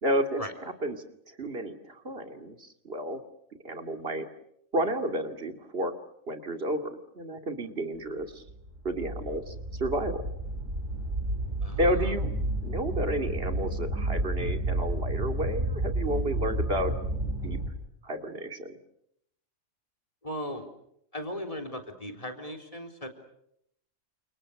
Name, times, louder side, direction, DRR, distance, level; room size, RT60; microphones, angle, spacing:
voice 1, 0.0-3.2 3.6-4.3 4.7-5.9 6.3-8.4 8.8-10.3 11.8-12.3 12.6-16.9 17.2-17.6 18.0-18.8, right 1 dB, 45° right, 6 dB, 2.8 m, -31 dB
sound 1, 8.5-17.7, right 1 dB, 75° right, 6.3 m, -31 dB
voice 2, 11.6-12.1 20.2-20.7 21.1-23.1, equal, 25° left, 7 dB, 3.9 m, -37 dB
30.0 x 28.0 x 6.6 m, 0.76 s
omnidirectional pair, 1.4 m